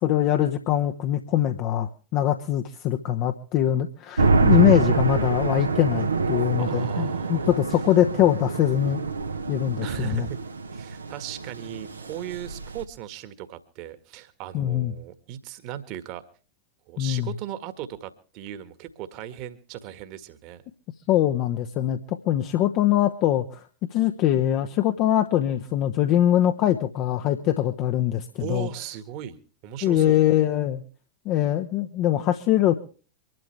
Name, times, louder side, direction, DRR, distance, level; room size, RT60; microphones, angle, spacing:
voice 1, 0.0-9.0 9.5-10.3 14.5-14.9 17.0-17.3 21.1-23.7 23.9-28.7 29.8-30.8 31.2-32.7, left 12 dB, 40° left, 6 dB, 1.0 m, -23 dB
sound 1, 4.2-12.8, right 4 dB, 75° right, 1.2 m, -25 dB
voice 2, 6.6-7.5 9.8-10.4 10.7-16.2 16.9-20.6 28.3-30.2, right 11 dB, 45° right, 11 dB, 1.7 m, -37 dB
25.0 x 12.0 x 3.3 m, 0.38 s
figure-of-eight pair, 90°, 0 cm